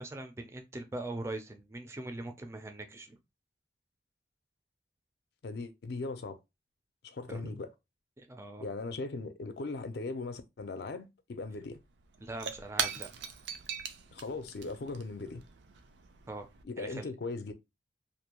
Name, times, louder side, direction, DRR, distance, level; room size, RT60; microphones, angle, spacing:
voice 1, 0.0-3.2 7.3-7.6 8.2-8.6 12.2-13.1 16.3-16.5 16.8-17.1, right 2 dB, 15° right, 0.3 m, -41 dB
voice 2, 5.4-6.4 7.0-7.7 8.6-11.8 14.1-15.4 16.6-17.5, left 3 dB, 60° left, 0.4 m, -39 dB
Shatter / Crushing, 11.4-11.5 11.7-16.6, right 7 dB, 80° right, 0.4 m, -40 dB
2.5 x 2.1 x 2.8 m
head